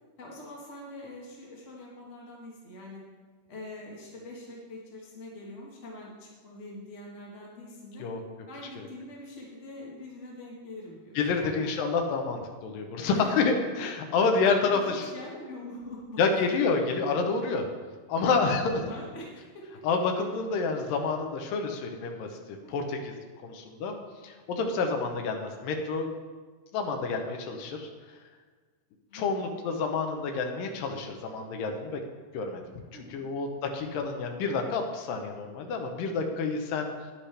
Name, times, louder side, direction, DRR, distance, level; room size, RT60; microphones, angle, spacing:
voice 1, 0.2-3.0 3.5-8.0 8.5-11.7 13.1-13.3 14.7-16.8 18.3-19.8 22.6-22.9 29.1-29.7 32.9-33.3, left 1 dB, 50° left, -3 dB, 0.8 m, -44 dB
voice 2, 11.2-15.1 16.2-17.7 18.1-18.9 19.8-23.1 23.4-24.0 24.2-26.1 26.7-27.9 29.1-32.0 32.3-32.6 33.1-36.9, left 4 dB, 90° left, 3 dB, 2.6 m, -28 dB
10.5 x 10.0 x 3.3 m, 1.4 s
omnidirectional pair, 3.8 m